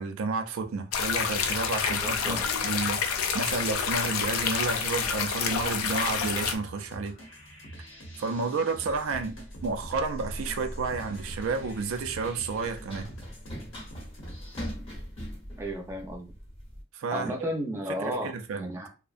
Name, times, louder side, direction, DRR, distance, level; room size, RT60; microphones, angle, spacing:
voice 1, 0.0-7.2 8.2-9.4 9.6-13.1 16.9-17.3 18.0-18.7, right 4 dB, 80° right, 0.4 m, -31 dB
sound 1, 0.9-6.6, left 6 dB, 85° left, 0.4 m, -28 dB
voice 2, 1.9-2.4 15.6-16.3 17.1-18.9, equal, 15° right, 0.5 m, -33 dB
sound 2, 3.4-14.7, equal, 65° left, 0.8 m, -47 dB
Run, 8.9-16.8, equal, 25° left, 0.8 m, -41 dB
2.6 x 2.1 x 2.4 m
head